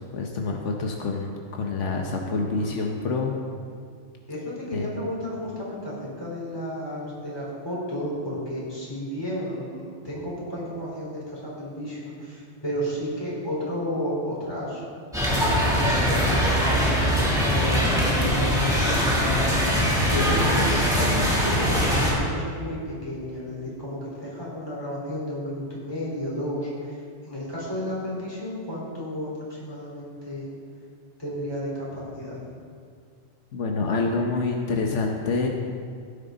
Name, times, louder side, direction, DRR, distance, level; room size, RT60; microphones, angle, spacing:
voice 1, 0.1-3.3 4.7-4.8 33.5-35.5, left 3 dB, 80° left, 1 dB, 1.3 m, -27 dB
voice 2, 2.0-2.9 4.3-14.8 15.2-21.2 21.6-30.5 31.2-32.4, equal, 20° left, -7 dB, 4.1 m, -33 dB
sound 1, 15.1-22.1, equal, 5° right, 2.8 m, -22 dB
16.5 x 10.5 x 4.0 m, 2.1 s
omnidirectional pair, 1.2 m